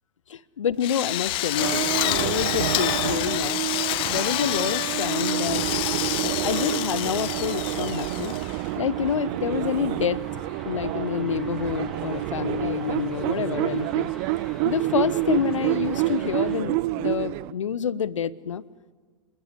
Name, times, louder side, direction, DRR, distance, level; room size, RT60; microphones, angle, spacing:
voice 1, 0.3-3.6 4.1-5.9 6.2-8.4 8.8-10.2 10.6-14.1 14.6-18.6, left 8 dB, 70° left, 19 dB, 0.9 m, -28 dB
Drill, 0.8-8.7, left 18 dB, 30° left, 0.7 m, -28 dB
sound 1, 1.2-16.6, left 1 dB, ahead, 3.3 m, -46 dB
sound 2, 1.6-17.5, right 19 dB, 40° right, 0.6 m, -28 dB
27.0 x 21.5 x 7.9 m, 1.5 s
figure-of-eight pair, 100°, 17 cm